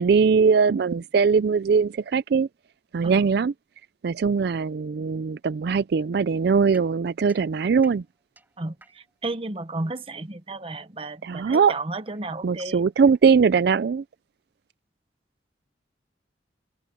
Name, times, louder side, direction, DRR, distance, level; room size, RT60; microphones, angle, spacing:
voice 1, 0.0-2.5 2.9-3.5 4.0-8.0 11.2-11.7 12.4-14.0, right 5 dB, 60° right, 0.4 m, -21 dB
sound 1, 6.7-9.3 10.4-13.7, right 2 dB, 10° right, 5.6 m, -57 dB
voice 2, 8.6-12.8, right 2 dB, 30° right, 1.0 m, -33 dB
open air
head